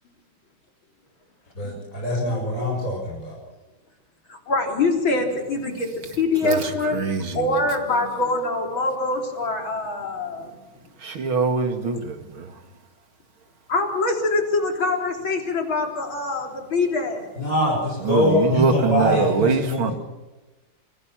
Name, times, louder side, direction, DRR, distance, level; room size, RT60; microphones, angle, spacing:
voice 1, 1.5-3.3 17.4-19.9, left 1 dB, 40° left, 6.6 m, -23 dB
voice 2, 4.3-10.6 13.7-17.3, left 3 dB, 70° left, 4.5 m, -24 dB
voice 3, 6.4-7.7 11.0-12.6 18.0-19.9, right 4 dB, 80° right, 2.9 m, -23 dB
25.0 x 17.5 x 5.9 m
omnidirectional pair, 2.3 m